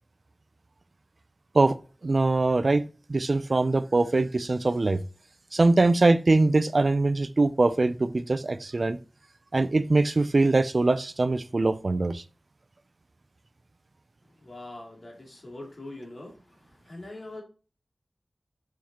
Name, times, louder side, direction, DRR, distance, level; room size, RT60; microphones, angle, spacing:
voice 1, 2.0-2.8 3.1-5.0 5.5-9.0 9.5-12.2, right 2 dB, 60° right, 0.5 m, -22 dB
voice 2, 14.4-16.3 16.8-17.4, left 2 dB, 55° left, 2.9 m, -42 dB
7.0 x 5.8 x 3.0 m
wide cardioid pair, 50°, 0 cm